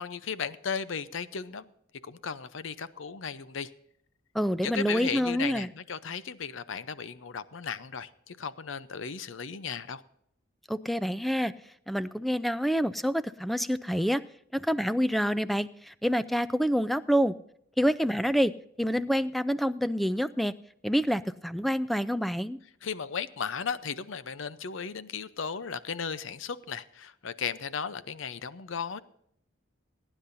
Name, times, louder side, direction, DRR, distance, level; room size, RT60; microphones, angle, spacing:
voice 1, 0.0-1.7 2.0-3.7 4.6-10.0 22.8-29.0, left 6 dB, 70° left, 15 dB, 0.7 m, -35 dB
voice 2, 4.3-5.7 10.7-11.5 11.9-14.2 14.5-17.3 17.8-18.5 18.8-20.5 20.8-22.6, equal, ahead, 14 dB, 0.3 m, -27 dB
21.0 x 10.0 x 2.6 m, 0.71 s
head